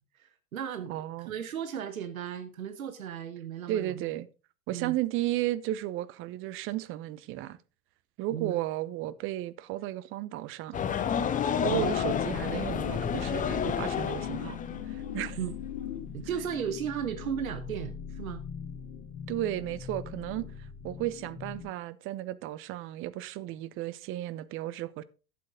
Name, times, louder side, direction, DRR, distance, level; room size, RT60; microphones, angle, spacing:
voice 1, 0.1-1.0 1.3-4.1 4.7-5.0 8.3-8.6 11.6-11.9 15.4-15.5 16.1-18.4, right 9 dB, 70° right, 1.1 m, -35 dB
voice 2, 0.9-1.3 3.7-4.3 4.7-7.6 8.2-10.8 11.6-14.6 14.9-15.4 19.3-25.0, right 14 dB, 30° right, 0.7 m, -34 dB
sound 1, 10.7-15.2, left 8 dB, 20° left, 0.9 m, -30 dB
sound 2, 11.5-21.7, left 8 dB, 50° left, 2.4 m, -39 dB
11.5 x 8.5 x 3.7 m
figure-of-eight pair, 90°, 43 cm